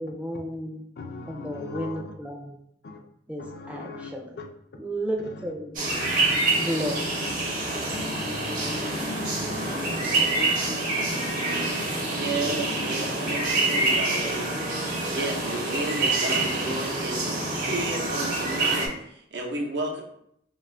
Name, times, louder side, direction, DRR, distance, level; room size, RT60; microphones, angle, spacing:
voice 1, 0.0-0.9 1.3-2.6 3.3-4.3 4.7-5.9 6.6-7.2 9.4-9.8 10.2-10.3, equal, 10° right, 0 dB, 0.4 m, -33 dB
voice 2, 1.0-2.0 2.8-3.0 3.4-4.5 5.2-5.3 6.0-6.1 6.5-7.3 7.9-13.5, left 3 dB, 65° left, 3 dB, 0.4 m, -39 dB
sound 1, 5.7-18.9, right 2 dB, 50° right, 0.7 m, -27 dB
voice 3, 12.1-14.6 15.1-20.0, right 2 dB, 85° right, -1 dB, 0.7 m, -32 dB
2.5 x 2.4 x 3.1 m, 0.72 s
head